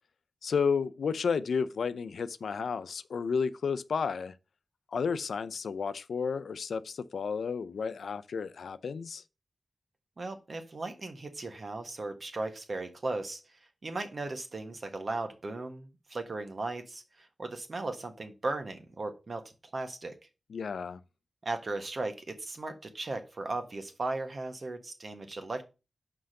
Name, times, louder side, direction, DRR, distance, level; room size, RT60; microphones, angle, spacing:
voice 1, 0.4-4.3 4.9-9.2 20.5-21.0, left 5 dB, 90° left, 0.5 m, -32 dB
voice 2, 10.2-13.4 13.8-19.4 19.7-20.1 21.4-25.6, right 2 dB, 50° right, 1.4 m, -37 dB
5.8 x 4.9 x 6.4 m
wide cardioid pair, 90°, 0 cm